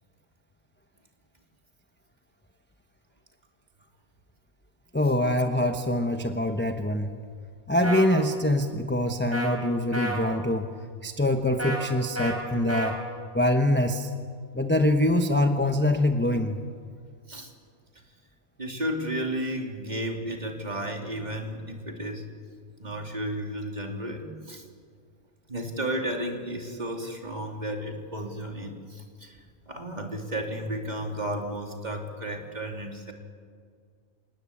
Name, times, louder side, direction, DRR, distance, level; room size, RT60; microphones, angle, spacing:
voice 1, 4.9-7.1 7.7-10.7 11.0-13.0 13.3-14.1 14.5-16.6, left 1 dB, 10° left, 5 dB, 0.9 m, -24 dB
sound 1, 7.8-8.1 9.3-9.5 9.9-10.2 11.6-11.8 12.2-12.3 12.7-12.9, right 1 dB, 10° right, 5.0 m, -30 dB
voice 2, 18.6-22.2 22.8-24.6 25.5-29.4 29.7-33.1, right 1 dB, 30° right, 2 dB, 2.9 m, -33 dB
27.5 x 19.0 x 8.6 m, 2.1 s
omnidirectional pair, 1.5 m